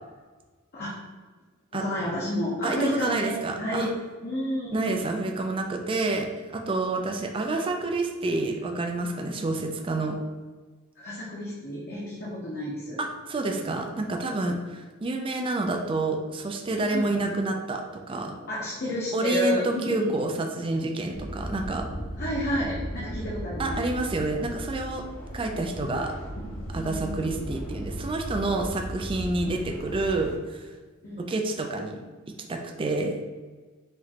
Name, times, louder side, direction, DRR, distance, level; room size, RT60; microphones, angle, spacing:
voice 1, 1.7-3.3 3.6-3.9 4.2-5.0 7.1-7.3 11.0-13.0 16.9-17.3 18.5-20.1 22.2-23.7 26.8-27.3 31.0-31.3, left 1 dB, 50° left, -6 dB, 0.9 m, -31 dB
voice 2, 2.6-3.9 4.7-10.2 13.0-18.4 19.1-21.9 23.6-25.0 25.3-26.1 26.7-30.7 31.2-32.0 32.3-33.2, right 2 dB, 25° right, 3 dB, 0.4 m, -28 dB
sound 1, 21.1-30.4, right 1 dB, 80° left, 1.0 m, -36 dB
4.9 x 3.1 x 2.8 m, 1.4 s
head